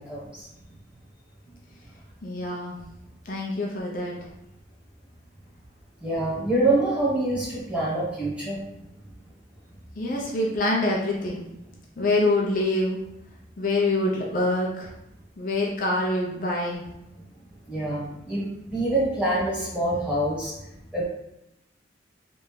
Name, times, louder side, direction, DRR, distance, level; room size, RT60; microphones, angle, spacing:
voice 1, 0.1-0.5 6.0-8.6 17.7-20.6 20.9-21.0, right 1 dB, 5° right, -7 dB, 1.1 m, -26 dB
voice 2, 2.2-2.8 3.3-4.2 10.0-11.5 12.0-13.0 13.6-14.9 15.4-16.8, left 2 dB, 50° left, -2 dB, 0.6 m, -25 dB
3.4 x 2.6 x 3.2 m, 0.88 s
head